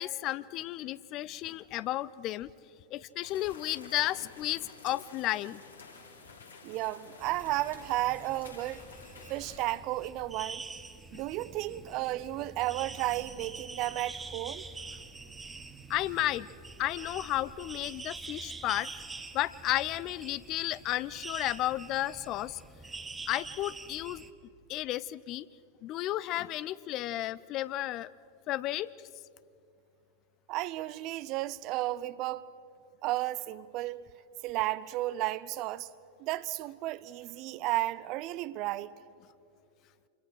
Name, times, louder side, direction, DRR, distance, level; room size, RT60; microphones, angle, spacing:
voice 1, 0.0-2.5 2.9-5.6 11.1-11.2 15.9-16.5 16.8-18.9 19.3-22.6 23.3-24.2 24.7-25.5 25.8-28.1 28.5-28.9, left 15 dB, 35° left, 0.5 m, -33 dB
sound 1, 3.2-9.7, left 4 dB, 75° left, 3.8 m, -51 dB
voice 2, 6.6-8.8 9.3-10.6 11.1-14.6 30.5-32.5 33.0-34.0 34.4-35.9 36.2-38.9, right 16 dB, 40° right, 0.6 m, -33 dB
sound 2, 7.2-24.3, right 3 dB, 10° right, 1.2 m, -45 dB
27.5 x 22.0 x 6.3 m
figure-of-eight pair, 90°, 0 cm